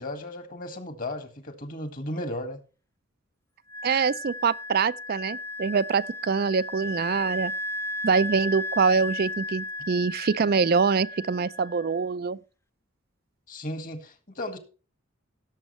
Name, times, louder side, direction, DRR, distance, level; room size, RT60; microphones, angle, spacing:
voice 1, 0.0-2.6 13.5-14.6, left 1 dB, 40° left, 1.7 m, -35 dB
Wind instrument woodwind instrument, 3.7-12.0, left 1 dB, 15° left, 0.5 m, -35 dB
voice 2, 3.8-7.5 8.0-12.4, right 5 dB, 45° right, 0.4 m, -24 dB
17.5 x 7.3 x 3.1 m
head